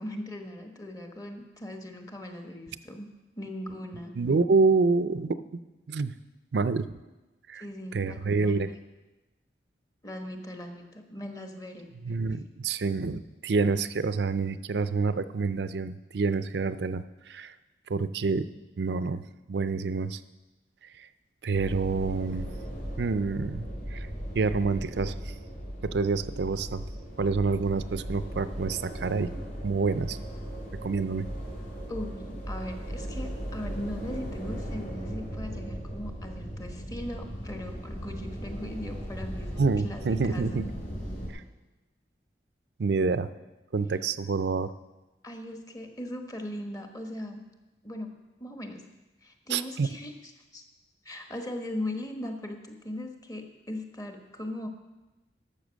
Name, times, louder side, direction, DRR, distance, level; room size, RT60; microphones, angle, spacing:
voice 1, 0.0-3.1 3.4-4.3 7.6-8.7 10.0-11.9 31.9-40.7 45.2-47.4 47.8-48.8 49.2-50.1 50.5-50.6 51.0-54.7, left 1 dB, 20° left, 4 dB, 1.1 m, -39 dB
voice 2, 4.2-5.4 5.9-6.1 6.5-6.9 7.5-7.6 7.9-8.7 12.0-17.5 17.9-18.4 18.8-19.2 19.5-20.2 21.0-21.1 21.4-22.5 23.0-24.1 24.3-25.3 25.8-26.8 27.2-29.3 29.6-30.2 30.8-31.3 39.6-40.6 41.3-41.4 42.8-43.3 43.7-44.7 49.5-49.9, right 4 dB, 70° right, 13 dB, 0.5 m, -27 dB
sound 1, 21.5-41.3, equal, 45° left, 3.3 m, -37 dB
12.0 x 7.0 x 6.3 m, 1.1 s
head